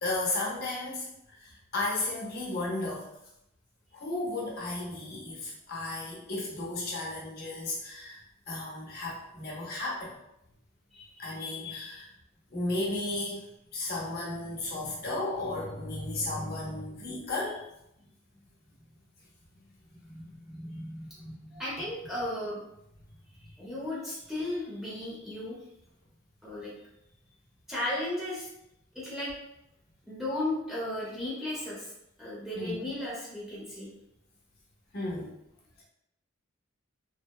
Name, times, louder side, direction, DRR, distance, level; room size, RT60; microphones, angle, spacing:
voice 1, 0.0-1.1 1.4-3.1 3.9-10.2 11.2-12.1 12.5-13.4 13.7-17.6 20.0-21.6 32.5-32.9 34.9-35.3, left 2 dB, 50° left, -3 dB, 0.6 m, -34 dB
voice 2, 10.9-11.3 18.0-18.1 21.5-22.6 23.6-25.6 26.4-26.7 27.7-28.5 28.9-29.3 30.1-31.9 32.2-33.9, left 1 dB, ahead, -8 dB, 0.7 m, -35 dB
2.8 x 2.0 x 2.2 m, 0.82 s
head